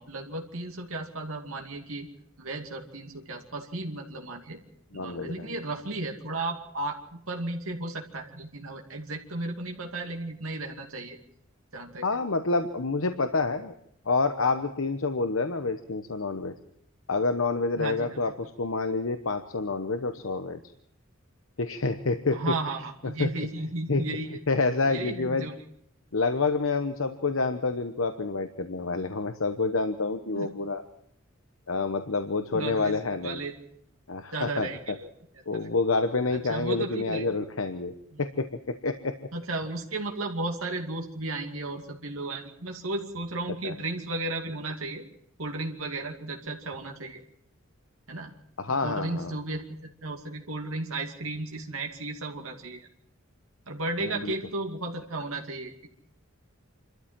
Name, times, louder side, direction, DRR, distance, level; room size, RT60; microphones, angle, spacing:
voice 1, 0.0-2.1 2.4-4.6 4.9-11.2 11.7-12.2 17.8-18.3 22.3-24.4 24.9-25.5 30.3-30.5 32.5-33.0 33.2-33.5 34.3-35.1 35.5-35.6 36.3-37.3 38.1-38.2 39.3-45.0 45.4-47.2 48.1-48.3 48.8-52.9 53.7-55.9, right 2 dB, 85° right, 2 dB, 2.4 m, -34 dB
voice 2, 4.9-5.5 12.0-13.7 14.0-16.5 17.1-20.6 21.6-22.4 23.0-23.3 23.9-24.0 24.5-25.5 26.1-30.8 31.7-33.4 34.1-35.0 35.5-37.9 38.2-39.2 43.6-43.7 48.6-49.4 54.0-54.3, left 3 dB, 75° left, 8 dB, 1.0 m, -28 dB
27.5 x 13.0 x 7.5 m, 0.69 s
head